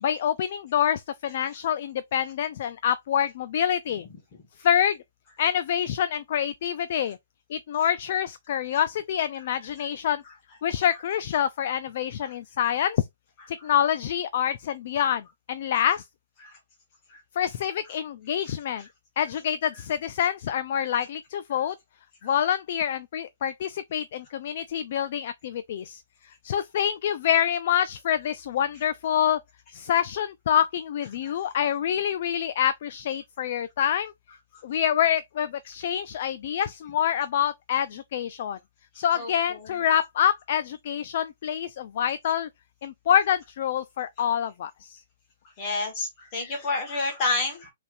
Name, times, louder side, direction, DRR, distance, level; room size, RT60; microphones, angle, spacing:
voice 1, 0.0-4.1 4.6-5.0 5.4-7.2 7.5-10.2 10.6-13.0 13.5-15.2 15.5-16.0 17.4-18.8 19.2-21.7 22.2-26.0 26.4-29.4 29.7-34.1 34.6-38.6 39.0-42.5 42.8-44.9, left 9 dB, 40° left, 0.4 m, -26 dB
voice 2, 45.6-47.7, left 3 dB, 20° left, 1.7 m, -28 dB
5.4 x 3.4 x 2.5 m
hypercardioid pair, 175°, 0 cm